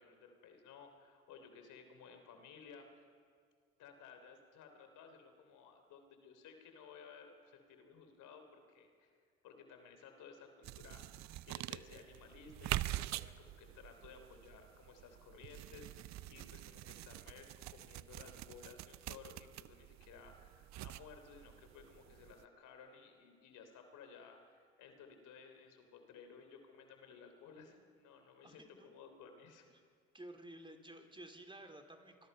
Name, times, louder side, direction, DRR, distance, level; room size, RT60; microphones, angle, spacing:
voice 1, 0.0-2.9 3.8-9.2 9.4-17.5 17.7-29.7, left 6 dB, 65° left, 6 dB, 3.4 m, -57 dB
sound 1, 10.6-22.4, right 15 dB, 55° right, 0.7 m, -45 dB
voice 2, 28.4-28.9 30.1-32.3, right 1 dB, 15° right, 5 dB, 3.3 m, -53 dB
25.5 x 20.5 x 5.6 m, 2.1 s
hypercardioid pair, 60°, 33 cm